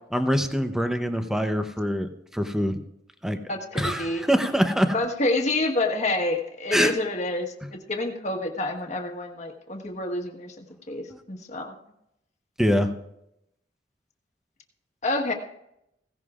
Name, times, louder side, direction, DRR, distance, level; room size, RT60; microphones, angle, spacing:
voice 1, 0.1-2.8 3.2-3.4 3.7-5.0 6.7-6.9 11.1-11.2 12.6-12.9, equal, 5° right, 7 dB, 0.7 m, -24 dB
voice 2, 3.5-4.2 4.9-11.7 15.0-15.3, left 2 dB, 40° left, 2 dB, 1.4 m, -28 dB
16.5 x 16.0 x 2.5 m, 0.80 s
head